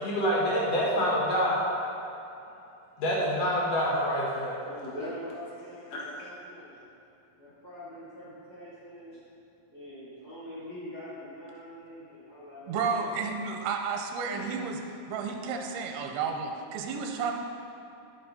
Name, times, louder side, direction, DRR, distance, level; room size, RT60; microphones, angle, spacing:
voice 1, 0.0-1.7 3.0-4.6 5.9-6.0, equal, 80° left, -5 dB, 1.4 m, -26 dB
voice 2, 4.6-6.8 7.3-9.2 9.7-13.4 14.3-14.6, equal, 40° left, -11 dB, 1.5 m, -43 dB
voice 3, 12.7-14.8 15.1-17.3, right 5 dB, 80° right, 3 dB, 2.5 m, -32 dB
11.0 x 5.7 x 4.1 m, 2.8 s
omnidirectional pair, 5.0 m